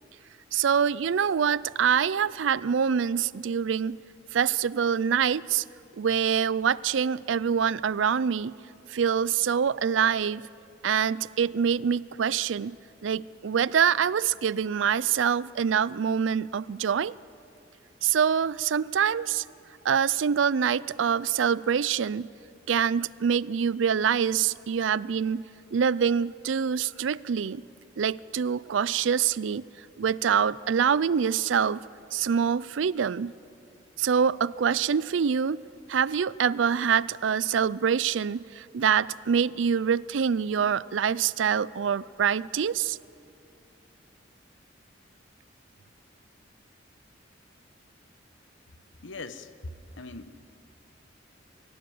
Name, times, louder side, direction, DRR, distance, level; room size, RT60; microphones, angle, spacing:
voice 1, 0.5-4.0 4.3-5.6 6.0-8.5 8.9-10.4 10.8-12.8 13.0-17.1 18.0-19.4 19.8-22.3 22.7-25.4 25.7-27.6 28.0-29.6 30.0-31.8 32.1-33.3 34.0-35.6 35.9-43.0, right 7 dB, 80° right, 0.4 m, -25 dB
voice 2, 49.0-50.3, left 2 dB, 90° left, 1.1 m, -41 dB
23.5 x 16.5 x 7.9 m
head